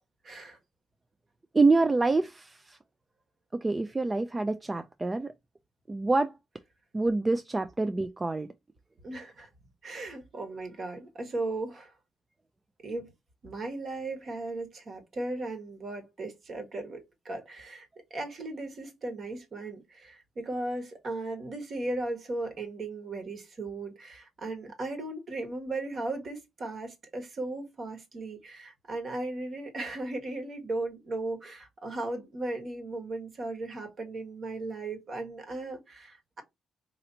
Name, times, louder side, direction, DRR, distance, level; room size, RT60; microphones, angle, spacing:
voice 1, 0.2-0.6 9.0-9.5 9.8-11.9 12.8-13.1 13.4-36.4, right 2 dB, 50° right, 1.4 m, -36 dB
voice 2, 1.5-2.8 3.5-5.3 5.9-6.4 6.9-8.5, right 3 dB, 20° right, 0.4 m, -26 dB
4.1 x 2.8 x 2.6 m
cardioid pair, 90°, 0 cm